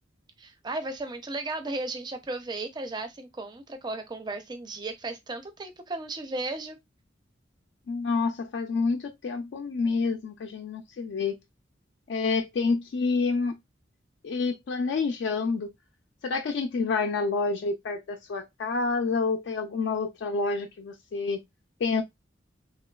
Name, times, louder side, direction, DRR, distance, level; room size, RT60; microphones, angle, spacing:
voice 1, 0.4-6.8, right 2 dB, 25° right, 0.4 m, -35 dB
voice 2, 7.9-11.4 12.1-13.6 14.2-15.7 16.2-21.4 21.8-22.0, left 4 dB, 65° left, 0.3 m, -28 dB
2.9 x 2.2 x 2.2 m
head